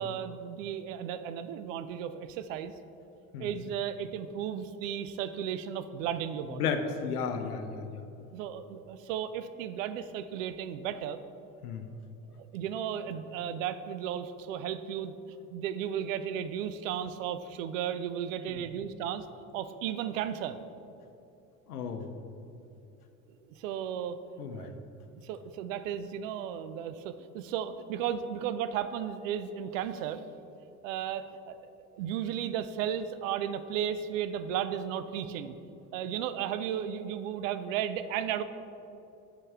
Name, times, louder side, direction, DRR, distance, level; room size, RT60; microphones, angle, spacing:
voice 1, 0.0-2.7 3.4-6.7 8.3-11.2 12.4-15.2 15.5-19.3 19.5-20.6 23.5-24.2 24.5-24.7 25.2-30.2 30.8-35.6 35.9-38.4, right 9 dB, 60° right, 12 dB, 0.5 m, -34 dB
voice 2, 6.5-8.0 11.6-11.9 18.5-18.7 21.7-22.1 24.4-24.7, left 5 dB, 75° left, 7 dB, 0.7 m, -34 dB
7.3 x 5.3 x 3.6 m, 2.8 s
figure-of-eight pair, 65°, 45 cm